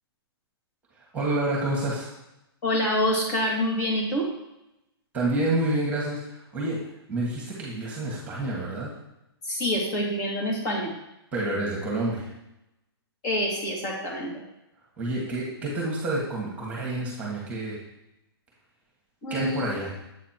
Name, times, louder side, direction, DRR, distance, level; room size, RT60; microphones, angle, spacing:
voice 1, 1.1-2.1 5.1-6.2 6.5-6.8 7.1-8.9 11.3-12.3 15.0-17.8 19.3-19.9, right 2 dB, 10° right, -4 dB, 1.8 m, -28 dB
voice 2, 2.6-4.3 9.4-10.9 13.2-14.4 19.2-19.7, equal, 40° left, -3 dB, 2.5 m, -26 dB
8.2 x 4.2 x 4.5 m, 0.88 s
hypercardioid pair, 155°, 14 cm